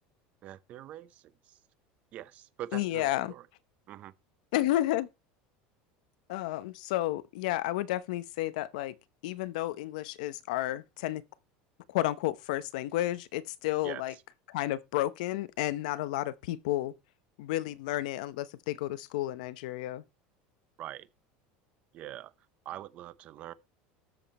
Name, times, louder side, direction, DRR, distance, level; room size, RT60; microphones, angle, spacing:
voice 1, 0.4-1.6 2.1-3.5 3.9-4.1 13.8-14.0 20.8-21.1 21.9-22.3 22.6-23.5, right 13 dB, 35° right, 0.7 m, -43 dB
voice 2, 2.7-3.3 4.5-5.1 6.3-8.9 9.2-11.2 11.9-14.1 14.5-16.9 17.4-20.0, left 15 dB, 75° left, 0.9 m, -31 dB
13.0 x 7.3 x 4.3 m
cardioid pair, 175°, 4 cm